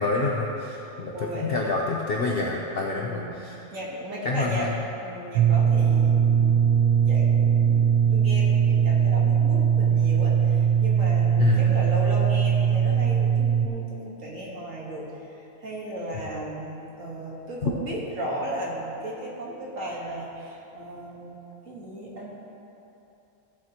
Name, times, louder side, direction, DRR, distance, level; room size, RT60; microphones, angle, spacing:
voice 1, 0.0-3.6 4.2-4.7 11.4-11.8, left 3 dB, 50° left, -1 dB, 0.8 m, -27 dB
voice 2, 1.1-1.6 2.9-3.4 3.7-4.7 5.0-6.6 7.0-15.1 15.6-22.4, right 1 dB, 60° right, -4 dB, 1.9 m, -35 dB
sound 1, 5.4-13.7, right 8 dB, 85° right, 1.2 m, -20 dB
15.0 x 7.5 x 2.9 m, 2.9 s
omnidirectional pair, 1.5 m